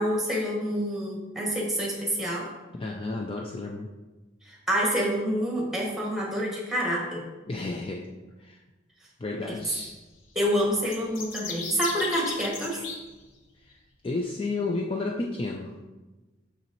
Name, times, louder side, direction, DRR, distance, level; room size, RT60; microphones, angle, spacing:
voice 1, 0.0-2.5 4.4-7.2 9.4-9.6 10.3-12.8, equal, ahead, -2 dB, 1.3 m, -27 dB
voice 2, 2.7-3.9 7.5-8.1 8.4-8.6 9.2-10.0 13.6-13.8 14.0-15.8, left 3 dB, 25° left, 1 dB, 0.4 m, -32 dB
sound 1, 10.8-13.0, left 5 dB, 85° left, 1.0 m, -36 dB
6.6 x 6.2 x 3.0 m, 1.2 s
head